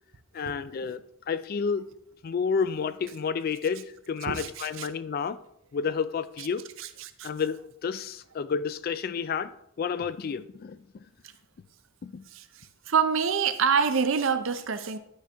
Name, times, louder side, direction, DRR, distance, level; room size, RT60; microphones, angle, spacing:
voice 1, 0.3-1.0 1.3-1.9 2.2-5.4 5.7-6.6 7.2-10.8 12.0-12.3, left 6 dB, 45° left, 0.3 m, -30 dB
voice 2, 4.3-4.9 6.8-7.3 12.3-12.4 12.9-15.0, right 6 dB, 70° right, 0.6 m, -26 dB
11.5 x 4.4 x 3.5 m
head